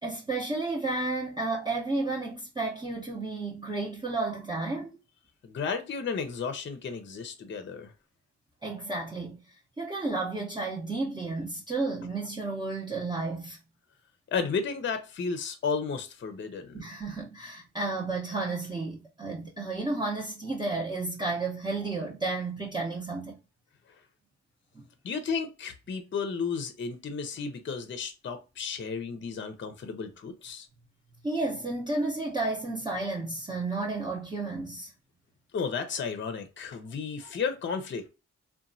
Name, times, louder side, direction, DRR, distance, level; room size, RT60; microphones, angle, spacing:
voice 1, 0.0-4.9 8.6-9.4 9.8-13.6 16.7-23.4 24.7-24.8 31.2-34.9, right 3 dB, 15° right, 0.6 m, -32 dB
voice 2, 5.4-7.9 14.3-16.8 25.0-30.7 35.5-38.1, left 5 dB, 40° left, 0.5 m, -33 dB
2.9 x 2.2 x 2.5 m
cardioid pair, 80°, 29 cm